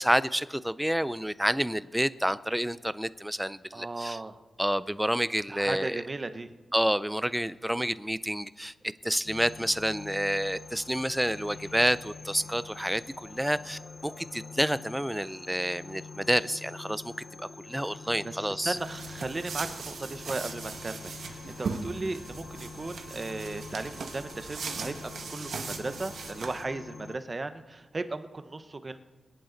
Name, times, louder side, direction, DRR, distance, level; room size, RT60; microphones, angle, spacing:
voice 1, 0.0-4.2 4.6-6.0 6.7-8.7 9.0-17.1 17.4-18.8, equal, 5° right, 15 dB, 0.4 m, -29 dB
voice 2, 3.7-4.4 5.5-6.5 17.9-18.0 18.2-29.0, right 2 dB, 25° right, 10 dB, 0.8 m, -36 dB
sound 1, 9.2-27.2, left 4 dB, 45° left, 0.7 m, -46 dB
sound 2, 18.7-26.6, right 5 dB, 80° right, 1.6 m, -39 dB
22.0 x 10.5 x 3.9 m, 1.3 s
wide cardioid pair, 140°, 0 cm